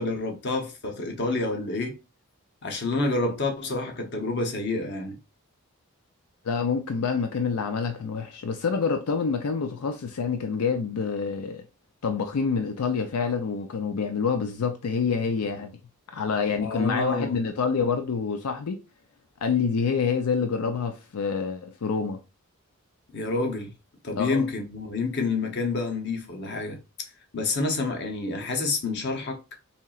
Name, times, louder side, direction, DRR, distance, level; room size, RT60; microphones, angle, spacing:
voice 1, 0.0-2.0 2.6-5.2 16.6-17.3 23.1-23.7 24.0-27.1 27.3-29.4, left 3 dB, 50° left, 0.8 m, -28 dB
voice 2, 6.4-11.6 12.0-15.8 16.1-18.8 19.4-22.2 24.2-24.4, left 5 dB, 85° left, 0.5 m, -27 dB
4.3 x 2.8 x 2.4 m
head